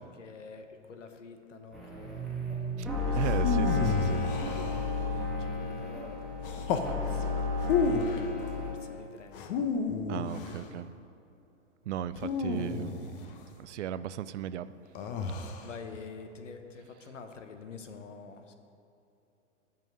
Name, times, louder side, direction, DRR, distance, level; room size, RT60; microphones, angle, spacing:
voice 1, 0.0-2.3 3.0-3.7 4.4-9.7 15.4-18.5, left 5 dB, 90° left, 7 dB, 0.9 m, -48 dB
sound 1, 1.7-8.7, left 3 dB, ahead, 1.9 m, -32 dB
voice 2, 3.1-4.2 10.1-10.9 11.9-13.1 13.6-14.7, right 10 dB, 75° right, 14 dB, 0.5 m, -36 dB
sound 2, 3.2-5.2 6.4-6.9 7.6-8.3 9.3-10.7 12.2-13.4 15.0-15.7, left 5 dB, 50° left, 0.9 m, -31 dB
7.5 x 5.5 x 7.6 m, 2.7 s
hypercardioid pair, 115°, 36 cm